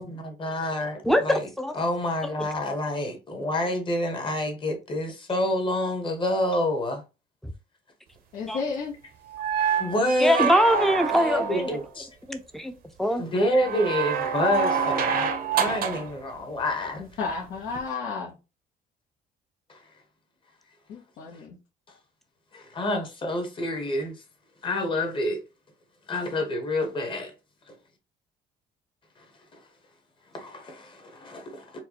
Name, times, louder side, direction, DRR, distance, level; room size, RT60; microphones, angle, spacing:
voice 1, 0.0-7.0 9.8-10.5 11.1-12.1 13.2-17.0 22.5-24.2 24.6-25.4 26.1-27.3 29.5-29.6 30.3-31.8, left 1 dB, 30° left, 1.2 m, -28 dB
voice 2, 8.3-9.0 17.0-18.3 20.9-21.6, left 4 dB, 70° left, 1.0 m, -32 dB
sound 1, 9.3-11.8 13.6-16.1 17.7-17.8, right 6 dB, 60° right, 0.8 m, -26 dB
voice 3, 10.2-11.8 12.3-12.7 13.0-13.2, equal, ahead, 0.6 m, -22 dB
4.4 x 2.3 x 2.9 m
cardioid pair, 110°, 17 cm